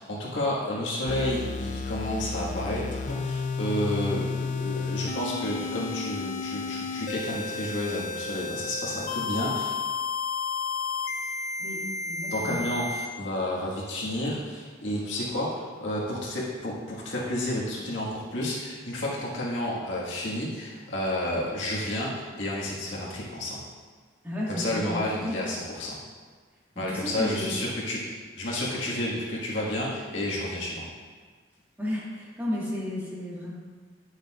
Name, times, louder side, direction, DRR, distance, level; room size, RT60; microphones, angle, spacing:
voice 1, 0.0-9.7 12.3-23.6 24.5-26.0 26.7-30.9, left 1 dB, 90° left, -5 dB, 1.7 m, -31 dB
sound 1, 1.1-13.1, left 4 dB, 40° left, 0.4 m, -32 dB
voice 2, 11.6-12.6 24.2-25.4 26.7-27.5 31.8-33.5, left 1 dB, 10° right, -7 dB, 1.6 m, -33 dB
9.6 x 6.5 x 2.4 m, 1.5 s
head